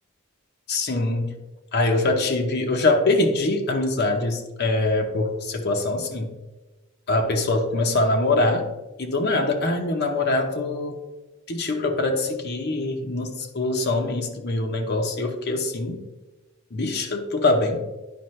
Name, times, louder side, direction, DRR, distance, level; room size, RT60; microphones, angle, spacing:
voice 1, 0.7-1.4 1.7-6.3 7.1-8.7 9.0-11.0 11.5-16.0 16.7-17.8, left 2 dB, 50° left, 4 dB, 0.8 m, -23 dB
10.5 x 5.1 x 3.2 m, 1.1 s
head